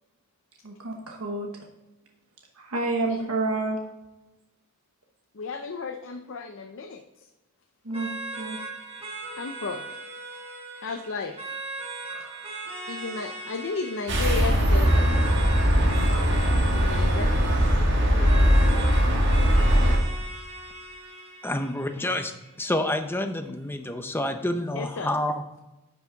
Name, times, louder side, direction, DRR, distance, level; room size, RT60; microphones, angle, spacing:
voice 1, 0.6-1.5 2.6-3.8 7.8-8.6 12.1-12.5, right 2 dB, 80° right, 1 dB, 1.1 m, -30 dB
voice 2, 5.4-7.0 9.4-9.8 10.8-11.3 12.9-15.1 16.6-17.3 19.7-19.8 24.7-25.1, left 4 dB, 60° left, 5 dB, 0.6 m, -33 dB
sound 1, 7.9-22.9, right 3 dB, 25° right, 1.5 m, -39 dB
sound 2, 14.1-20.0, equal, 55° right, 1.7 m, -20 dB
voice 3, 21.4-22.3 22.6-25.4, left 1 dB, 10° left, 7 dB, 0.6 m, -28 dB
10.5 x 5.9 x 3.9 m, 1.0 s
head